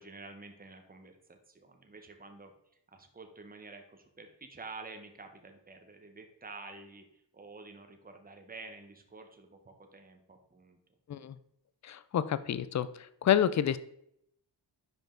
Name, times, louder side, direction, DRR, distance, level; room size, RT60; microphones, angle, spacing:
voice 1, 0.0-2.5 2.9-10.8, right 3 dB, 20° right, 5 dB, 1.0 m, -49 dB
voice 2, 11.8-12.9 13.2-13.8, left 10 dB, 40° left, 15 dB, 0.4 m, -28 dB
5.3 x 4.9 x 3.8 m, 0.76 s
cardioid pair, 60°, 45 cm